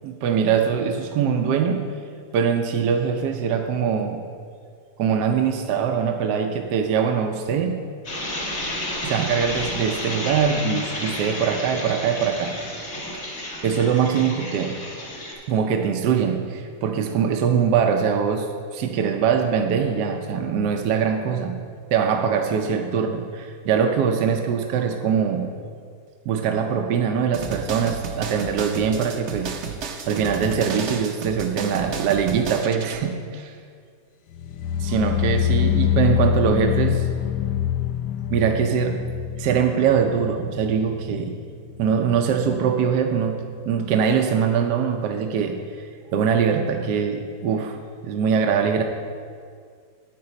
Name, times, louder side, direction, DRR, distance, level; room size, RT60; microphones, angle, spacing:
voice 1, 0.0-1.8 2.3-4.2 5.0-7.8 9.0-12.5 13.3-14.7 15.5-21.6 21.9-25.5 26.3-29.5 30.1-33.5 34.8-37.1 38.3-39.0 39.4-41.4 41.8-47.8 48.0-48.8, right 7 dB, 80° right, 4 dB, 1.2 m, -22 dB
sound 1, 8.0-15.3, left 1 dB, 45° left, 1.9 m, -31 dB
sound 2, 27.3-33.0, right 5 dB, 55° right, 0.9 m, -33 dB
sound 3, 34.3-41.5 41.7-42.2 42.5-42.6, left 11 dB, 85° left, 1.2 m, -25 dB
9.3 x 8.8 x 4.2 m, 2.1 s
omnidirectional pair, 1.8 m